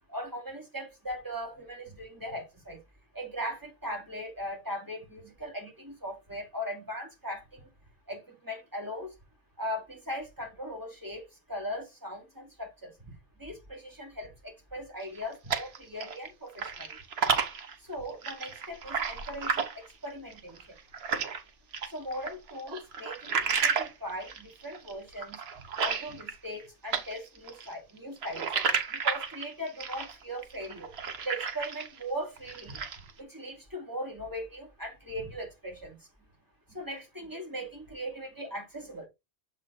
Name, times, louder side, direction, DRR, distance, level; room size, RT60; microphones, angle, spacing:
voice 1, 0.1-2.8 3.1-7.7 8.1-9.1 9.6-11.2 11.5-13.1 13.4-16.9 17.9-19.7 20.0-20.6 21.9-25.4 25.8-28.5 28.9-30.9 31.2-32.8 33.2-36.0 36.7-39.1, equal, 15° right, 2.6 m, -39 dB
sound 1, 15.0-16.3 16.6-21.4 21.7-26.6 26.9-32.0 32.4-33.1, right 6 dB, 65° right, 1.2 m, -32 dB
7.1 x 4.0 x 4.0 m
omnidirectional pair, 1.1 m